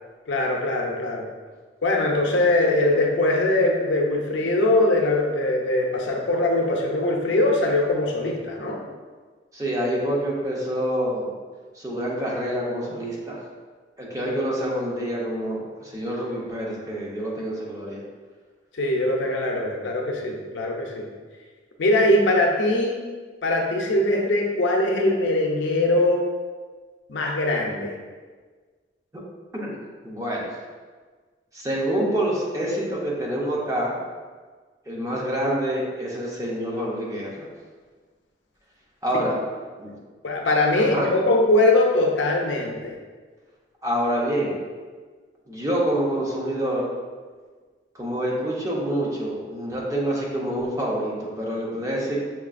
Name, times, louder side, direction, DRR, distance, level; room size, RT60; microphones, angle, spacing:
voice 1, 0.3-1.2 1.8-8.8 18.7-21.0 21.8-23.0 23.4-26.2 27.1-28.0 40.2-43.0, left 1 dB, 70° left, 0 dB, 0.5 m, -21 dB
voice 2, 9.5-11.3 11.7-13.4 14.0-18.0 29.5-29.8 30.0-30.5 31.5-33.9 34.9-37.5 39.0-39.4 39.8-40.0 40.8-41.1 43.8-44.6 45.5-46.9 47.9-52.2, right 1 dB, 20° right, -4 dB, 0.7 m, -27 dB
5.8 x 2.4 x 2.4 m, 1.5 s
head